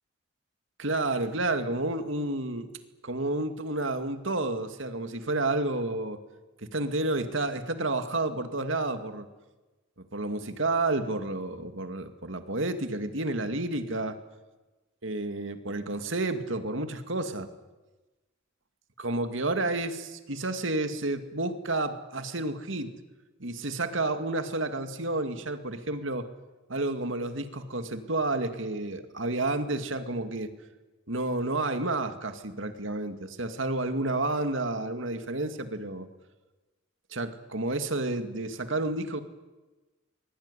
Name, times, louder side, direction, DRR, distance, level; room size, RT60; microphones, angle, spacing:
voice 1, 0.8-2.8 3.0-6.2 6.6-9.3 10.1-14.2 15.0-17.5 19.0-22.9 23.4-26.3 26.7-30.5 31.1-36.1 37.1-39.2, right 2 dB, 70° right, 8 dB, 2.4 m, -30 dB
24.5 x 22.5 x 10.0 m, 1.2 s
head